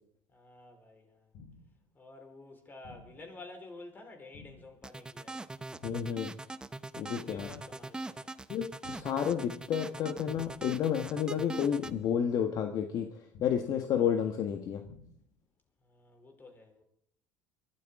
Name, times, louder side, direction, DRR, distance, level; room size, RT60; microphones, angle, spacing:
voice 1, 0.3-1.3 1.9-5.5 7.1-8.3 15.8-16.8, left 2 dB, 25° left, 4.5 m, -51 dB
sound 1, 1.3-1.8 2.8-3.3 4.3-4.8 5.8-6.3 7.3-7.8 8.8-9.3 10.3-10.8 11.8-12.3 13.3-13.8 14.8-15.3, left 4 dB, 70° left, 5.2 m, -53 dB
sound 2, 4.8-11.9, right 2 dB, 10° right, 0.7 m, -42 dB
voice 2, 5.8-6.3 7.0-7.5 8.5-14.8, left 8 dB, 55° left, 1.4 m, -31 dB
23.5 x 13.0 x 3.7 m
cardioid pair, 115°, 8 cm